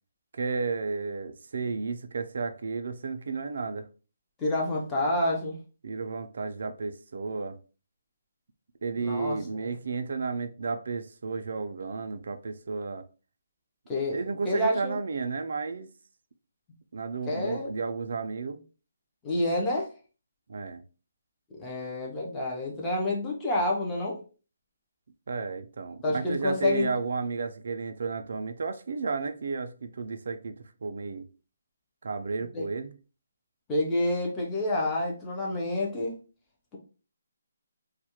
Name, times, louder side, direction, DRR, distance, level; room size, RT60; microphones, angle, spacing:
voice 1, 0.3-3.9 5.8-7.6 8.8-13.0 14.1-15.9 16.9-18.6 20.5-20.8 25.3-30.6 30.8-31.3 32.0-33.0, right 4 dB, 50° right, 0.3 m, -32 dB
voice 2, 4.4-5.6 9.0-9.7 13.9-15.0 17.2-17.8 19.2-19.9 21.6-24.2 26.0-26.9 32.5-32.7 33.7-36.2, left 1 dB, 10° left, 0.4 m, -28 dB
2.3 x 2.0 x 2.8 m
hypercardioid pair, 175°, 0 cm